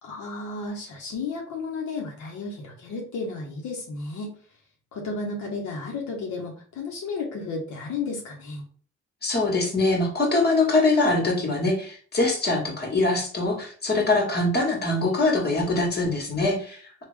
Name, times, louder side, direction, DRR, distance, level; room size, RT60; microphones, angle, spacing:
voice 1, 0.0-4.3 4.9-8.6, left 3 dB, 75° left, 0 dB, 0.9 m, -33 dB
voice 2, 9.2-17.0, left 2 dB, 35° left, 0 dB, 1.4 m, -23 dB
3.4 x 2.4 x 3.3 m, 0.43 s
cardioid pair, 90°, 30 cm